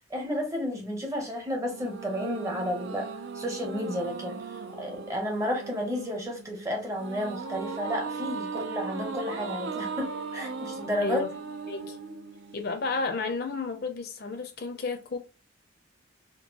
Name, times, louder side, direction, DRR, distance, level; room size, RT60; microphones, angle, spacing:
voice 1, 0.1-3.1 3.3-11.2, equal, 15° right, 0.7 m, -32 dB
sound 1, 1.7-13.0, right 5 dB, 60° right, 0.4 m, -38 dB
voice 2, 11.0-11.4 11.7-12.0 12.5-15.2, left 4 dB, 50° left, 0.5 m, -32 dB
3.7 x 2.2 x 2.8 m
head